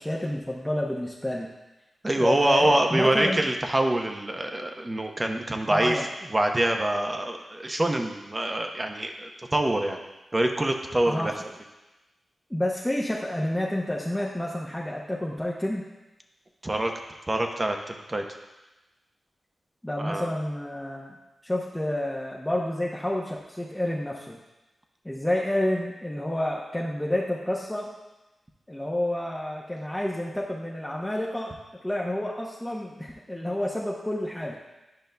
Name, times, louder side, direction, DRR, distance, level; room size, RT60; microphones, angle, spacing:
voice 1, 0.0-1.5 2.2-3.4 5.7-6.1 11.1-11.3 12.5-15.9 19.8-21.1 21.4-24.4 25.0-27.9 28.7-31.5 31.8-34.6, left 1 dB, 10° left, -4 dB, 0.9 m, -29 dB
voice 2, 2.0-6.0 6.3-10.0 10.3-11.3 16.6-16.9 17.3-17.8 18.1-18.2 20.0-20.3, right 1 dB, 30° right, 4 dB, 0.9 m, -25 dB
11.5 x 5.2 x 2.3 m, 1.0 s
cardioid pair, 45°, 0 cm